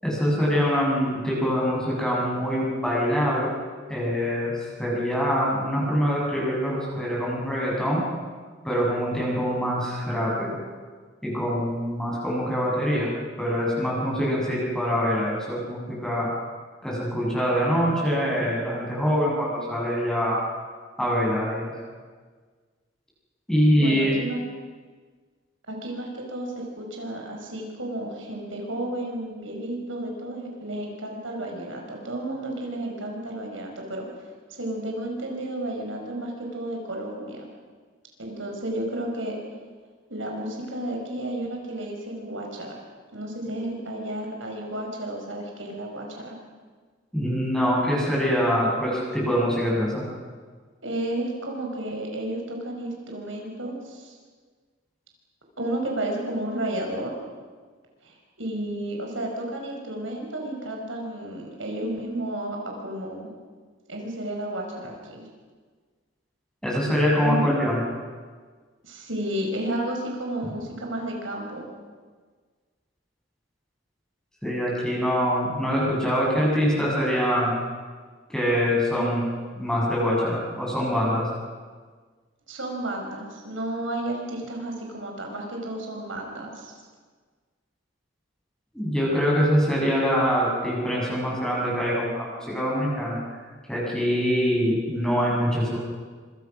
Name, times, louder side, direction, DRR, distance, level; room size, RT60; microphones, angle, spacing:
voice 1, 0.0-3.5 3.9-8.0 8.6-10.6 11.2-13.1 13.4-16.3 16.8-20.4 21.0-21.8 23.5-24.1 47.1-50.1 66.6-67.8 74.4-77.6 78.3-79.2 79.6-81.3 88.7-93.2 93.7-95.8, equal, 5° left, -5 dB, 7.9 m, -24 dB
voice 2, 23.8-24.4 25.7-34.1 34.6-37.5 38.2-39.4 40.1-42.8 43.1-46.4 50.8-54.2 55.6-57.1 58.0-63.3 63.9-65.3 67.2-67.4 68.8-71.7 78.9-79.1 82.5-86.7, right 1 dB, 90° right, 0 dB, 5.5 m, -32 dB
26.5 x 25.5 x 6.3 m, 1.5 s
head